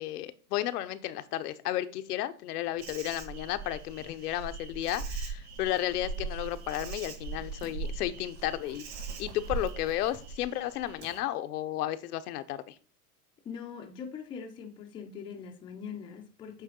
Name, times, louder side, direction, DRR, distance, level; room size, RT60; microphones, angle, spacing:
voice 1, 0.0-8.9 9.2-12.7, left 13 dB, 80° left, 0.7 m, -33 dB
Insect, 2.8-11.2, right 4 dB, 45° right, 2.1 m, -40 dB
voice 2, 13.4-16.6, left 6 dB, 10° left, 0.4 m, -42 dB
8.3 x 3.4 x 3.7 m
supercardioid pair, 145°, 46 cm